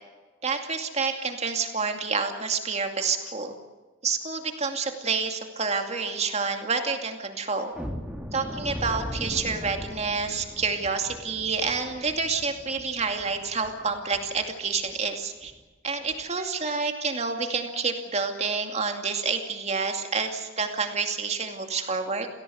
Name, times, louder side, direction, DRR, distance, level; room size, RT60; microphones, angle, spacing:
voice 1, 0.4-3.6 4.0-7.7 8.3-15.5 15.8-22.3, right 4 dB, 35° right, 5 dB, 2.4 m, -28 dB
sound 1, 7.7-14.5 14.8-15.0 15.4-15.6 16.0-16.2, equal, 5° right, 2.3 m, -39 dB
29.0 x 17.5 x 7.9 m, 1.3 s
head